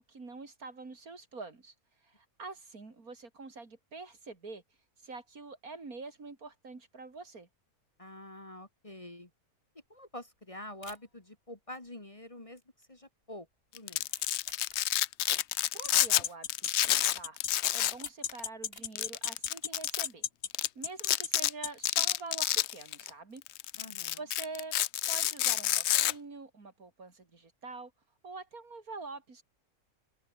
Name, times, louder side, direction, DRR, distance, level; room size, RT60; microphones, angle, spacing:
voice 1, 0.0-1.7 2.0-4.6 5.0-7.5 15.7-17.4 17.7-20.3 20.8-23.4 24.2-24.8 25.1-27.9 28.2-29.4, right 3 dB, 75° right, 3.8 m, -46 dB
voice 2, 8.0-9.3 9.9-13.5 13.7-14.1 23.8-24.2, left 1 dB, 25° left, 1.9 m, -46 dB
sound 1, 9.8-10.1 10.4-10.5 10.8-11.3 11.7-12.2 12.5-13.0 13.2-13.3 13.9-15.5 16.0-16.9 17.2-19.1 19.6-20.1 20.4-20.5, left 1 dB, 40° left, 7.8 m, -54 dB
Domestic sounds home sounds, 13.7-16.2 16.5-18.0 18.3-18.4 19.0-20.0 20.5-20.7 21.0-21.5 21.9-23.1 23.5-26.1, left 13 dB, 65° left, 0.7 m, -29 dB
sound 2, 15.8-21.9, left 8 dB, 80° left, 1.8 m, -34 dB
omnidirectional pair, 1.5 m